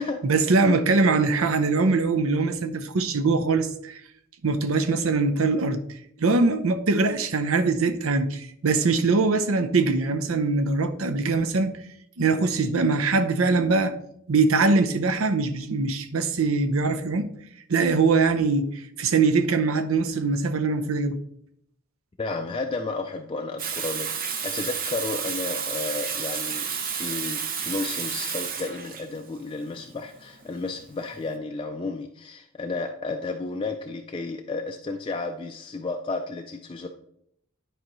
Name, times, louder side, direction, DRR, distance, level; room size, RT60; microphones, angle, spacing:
voice 1, 0.2-4.0 4.4-5.8 6.2-11.7 12.2-14.0 14.3-17.3 17.7-21.2, right 3 dB, 80° right, 0.7 m, -22 dB
voice 2, 22.2-36.9, left 3 dB, 25° left, 0.4 m, -32 dB
Water tap faucet / Sink (filling or washing), 23.6-31.2, right 6 dB, 45° right, 0.7 m, -31 dB
10.0 x 4.8 x 3.0 m
head